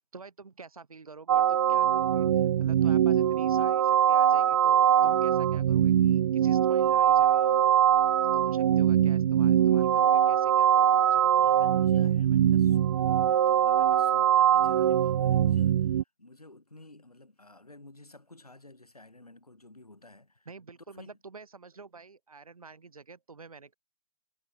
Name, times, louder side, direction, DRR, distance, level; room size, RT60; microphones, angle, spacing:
voice 1, 0.1-7.7 8.3-11.5 20.5-23.7, right 4 dB, 70° right, 3.9 m, -48 dB
sound 1, 1.3-16.0, right 10 dB, 45° right, 0.4 m, -22 dB
voice 2, 11.4-20.5 20.9-21.2, left 2 dB, 85° left, 7.3 m, -53 dB
figure-of-eight pair, 125°, 19 cm